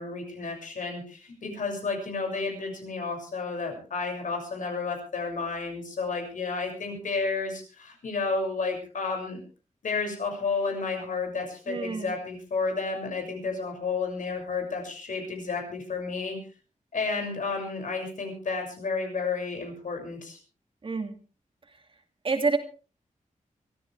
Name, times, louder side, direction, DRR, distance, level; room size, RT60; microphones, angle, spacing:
voice 1, 0.0-9.4 9.8-16.4 16.9-20.4, left 4 dB, 75° left, 3 dB, 6.7 m, -31 dB
voice 2, 11.7-12.1 20.8-21.2 22.2-22.6, right 4 dB, 40° right, 5 dB, 2.6 m, -27 dB
24.0 x 15.0 x 3.5 m, 0.36 s
wide cardioid pair, 145°, 14 cm